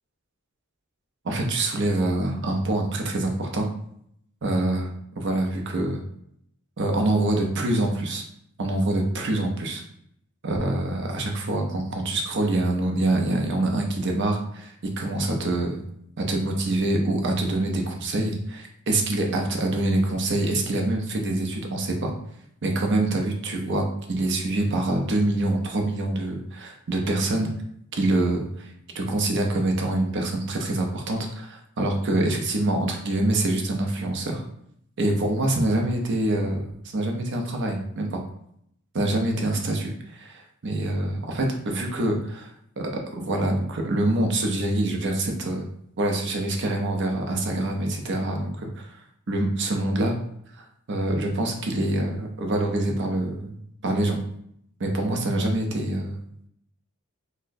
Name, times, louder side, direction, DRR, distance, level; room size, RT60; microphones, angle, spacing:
voice 1, 1.2-3.7 4.4-4.9 5.2-6.0 6.8-8.2 8.6-9.8 10.4-15.8 16.2-22.1 22.6-27.5 27.9-34.4 35.0-38.2 38.9-42.5 42.8-45.6 46.0-48.9 49.3-50.2 50.6-53.6 53.8-54.2 54.8-56.2, right 1 dB, 55° right, 2 dB, 0.6 m, -25 dB
4.2 x 2.1 x 2.6 m, 0.70 s
head